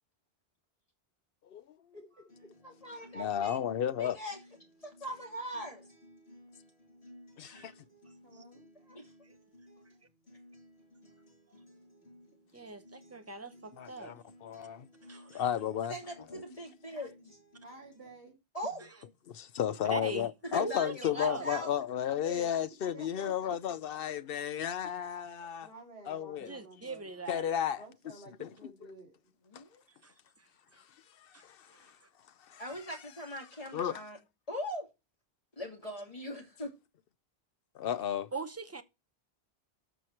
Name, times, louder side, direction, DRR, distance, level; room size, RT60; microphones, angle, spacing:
voice 1, 1.9-2.5 2.8-2.9 8.2-8.7 17.6-18.4 22.9-23.5 25.6-27.1 27.8-29.1 31.9-32.2, right 2 dB, 70° right, 2.8 m, -53 dB
Acoustic guitar, 2.3-18.3, equal, 90° left, 7.0 m, -58 dB
voice 2, 2.6-3.6 4.0-4.4 4.8-5.9 8.9-9.1 15.4-17.4 18.5-18.9 20.5-21.7 22.1-22.6 29.4-29.8 32.6-34.2 34.5-34.9 35.6-36.8, equal, 35° left, 2.9 m, -41 dB
voice 3, 3.1-4.2 7.4-7.7 13.8-14.9 15.3-15.9 16.3-16.4 19.3-25.7 26.1-26.5 27.3-27.8 28.4-28.5 29.5-29.6 31.4-31.9 32.5-32.6 33.7-34.0 37.7-38.3, left 9 dB, 65° left, 0.8 m, -33 dB
voice 4, 12.5-14.1 15.0-15.4 18.8-18.9 19.9-20.3 20.6-21.5 26.5-27.4 30.0-30.8 31.3-31.4 31.7-31.9 38.3-38.8, right 3 dB, 15° right, 0.8 m, -41 dB
13.5 x 4.7 x 4.6 m
omnidirectional pair, 1.0 m